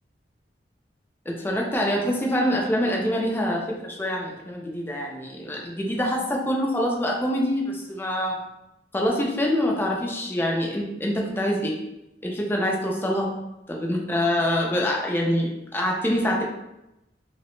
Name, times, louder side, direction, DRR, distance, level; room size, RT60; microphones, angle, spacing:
voice 1, 1.3-8.5 8.9-11.8 12.2-13.3 13.7-16.4, equal, 10° left, -1 dB, 0.4 m, -25 dB
2.8 x 2.1 x 3.0 m, 0.90 s
head